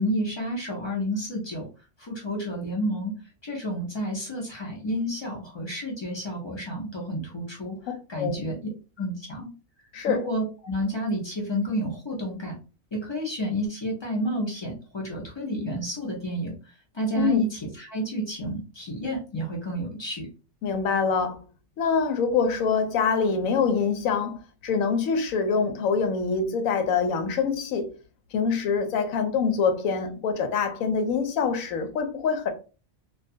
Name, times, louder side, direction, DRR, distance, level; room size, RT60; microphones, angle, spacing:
voice 1, 0.0-1.7 2.0-3.1 3.4-8.6 9.0-9.5 10.1-12.6 12.9-20.3, equal, 45° left, 0.3 m, -30 dB
voice 2, 9.9-10.3 17.2-17.4 20.6-21.5 21.8-27.9 28.3-32.5, left 5 dB, 85° left, 1.0 m, -25 dB
2.3 x 2.3 x 2.6 m
omnidirectional pair, 1.4 m